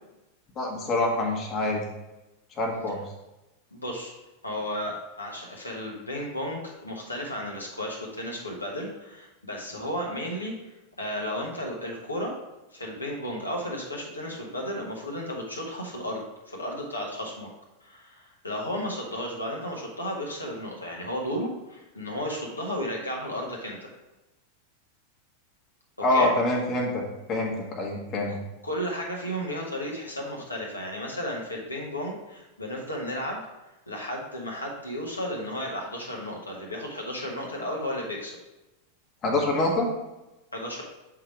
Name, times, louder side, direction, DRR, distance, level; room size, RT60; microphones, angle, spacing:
voice 1, 0.6-1.8 2.6-3.0 26.0-27.0 27.3-28.3 39.2-39.9, left 2 dB, 30° left, 0 dB, 1.3 m, -25 dB
voice 2, 3.7-4.1 4.4-12.3 12.7-17.5 17.8-23.9 26.1-26.3 28.3-28.4 28.6-33.4 33.9-38.4 40.5-40.8, equal, 80° left, -2 dB, 1.2 m, -33 dB
7.3 x 3.8 x 4.5 m, 1.0 s
figure-of-eight pair, 90°, 0 cm